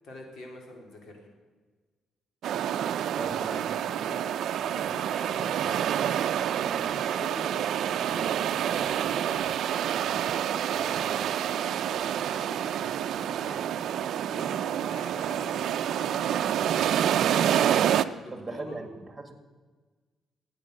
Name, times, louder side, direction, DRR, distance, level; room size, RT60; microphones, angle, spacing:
voice 1, 0.0-1.3 3.0-9.3 9.9-16.8 18.0-18.8, left 1 dB, 65° left, 1 dB, 3.5 m, -46 dB
sound 1, 2.4-18.0, right 10 dB, 75° right, 0.5 m, -28 dB
voice 2, 3.2-3.7 18.3-19.3, right 3 dB, 20° right, 7 dB, 2.0 m, -38 dB
14.5 x 9.7 x 6.5 m, 1.4 s
cardioid pair, 90°, 0 cm